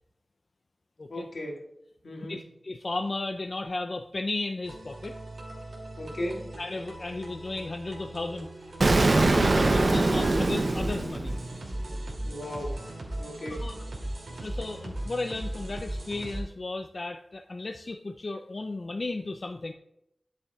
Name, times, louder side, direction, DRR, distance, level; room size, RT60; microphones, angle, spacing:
voice 1, 1.1-1.7 2.0-2.4 6.0-6.5 10.2-10.5 12.2-12.9 13.2-13.7, left 1 dB, 80° left, -1 dB, 1.9 m, -37 dB
voice 2, 2.3-5.2 6.6-8.5 9.1-11.4 13.5-13.8 14.0-14.1 14.4-19.7, left 2 dB, 50° left, 5 dB, 0.5 m, -34 dB
sound 1, 4.6-16.4, right 1 dB, 85° right, 2.6 m, -38 dB
Explosion, 8.8-11.7, right 2 dB, 55° right, 0.6 m, -23 dB
11.5 x 6.8 x 2.4 m, 0.79 s
wide cardioid pair, 85°, 0 cm